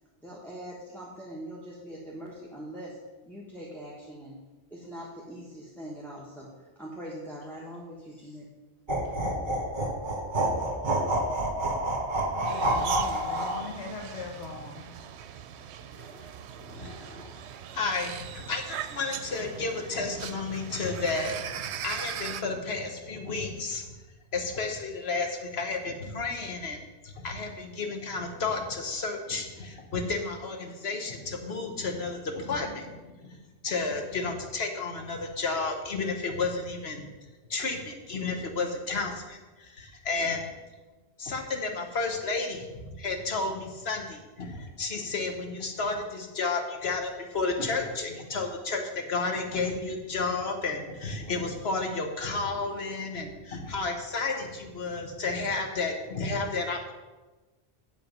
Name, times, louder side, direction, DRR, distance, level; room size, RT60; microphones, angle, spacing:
voice 1, 0.2-3.0 3.2-4.4 4.7-8.5, right 1 dB, ahead, -5 dB, 1.3 m, -42 dB
sound 1, 8.9-13.6, right 1 dB, 45° right, 1.8 m, -28 dB
voice 2, 12.4-14.9, left 4 dB, 90° left, 0 dB, 1.4 m, -40 dB
sound 2, 12.4-22.4, right 9 dB, 85° right, 0.9 m, -40 dB
voice 3, 16.6-17.3 17.7-23.8 24.3-26.8 27.0-33.3 33.6-37.1 37.5-40.4 41.2-56.9, left 3 dB, 70° left, 4 dB, 1.5 m, -32 dB
8.8 x 7.4 x 5.3 m, 1.2 s
omnidirectional pair, 1.1 m